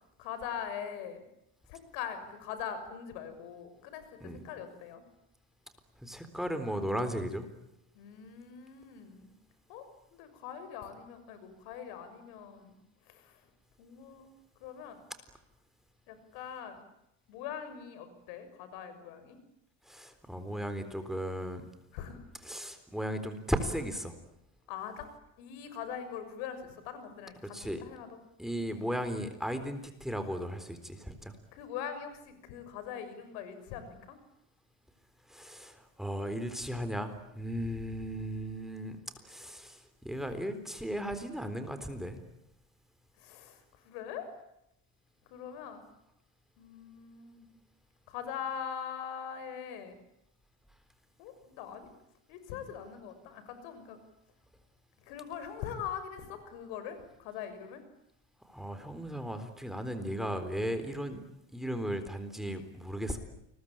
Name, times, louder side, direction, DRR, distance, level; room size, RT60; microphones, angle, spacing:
voice 1, 0.2-1.2 1.7-4.2 4.4-5.0 7.9-9.3 9.7-9.8 10.2-12.7 13.1-13.4 13.8-14.3 14.6-15.0 16.1-16.8 17.3-19.4 21.9-22.2 24.7-25.1 25.4-27.5 27.8-28.2 31.5-34.2 40.2-40.3 43.2-44.3 45.3-45.8 46.6-47.5 48.1-50.0 51.2-51.9 52.3-54.0 55.0-57.8, left 8 dB, 85° left, 10 dB, 6.6 m, -42 dB
voice 2, 6.0-7.5 19.8-21.7 22.4-24.1 27.5-27.8 28.4-31.4 35.3-42.2 58.4-61.2 61.5-63.2, equal, ahead, 9 dB, 3.9 m, -36 dB
29.5 x 22.5 x 8.9 m, 0.83 s
cardioid pair, 125°, 36 cm